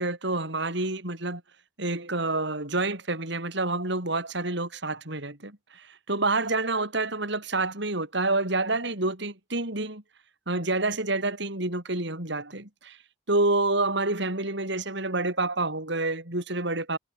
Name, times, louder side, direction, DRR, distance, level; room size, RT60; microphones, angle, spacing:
voice 1, 0.0-1.4 1.8-10.0 10.5-13.0 13.3-17.0, right 2 dB, 65° right, 6.0 m, -28 dB
head